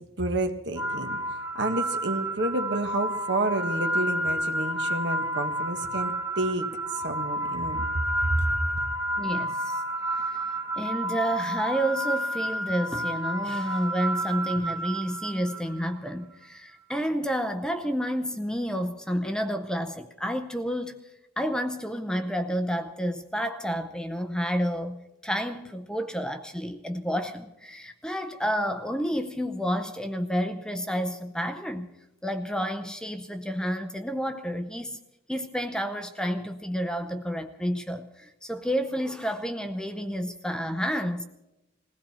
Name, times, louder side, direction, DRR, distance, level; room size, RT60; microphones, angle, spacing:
voice 1, 0.2-1.2 1.5-6.7 6.9-7.9 8.2-8.4, right 2 dB, 65° right, 1.4 m, -30 dB
sound 1, 0.8-15.9, right 1 dB, 15° right, 1.1 m, -30 dB
voice 2, 9.2-9.8 10.1-10.4 10.7-21.1 21.4-31.9 32.2-35.0 35.3-41.2, equal, 5° left, 0.7 m, -30 dB
21.0 x 16.0 x 4.2 m
head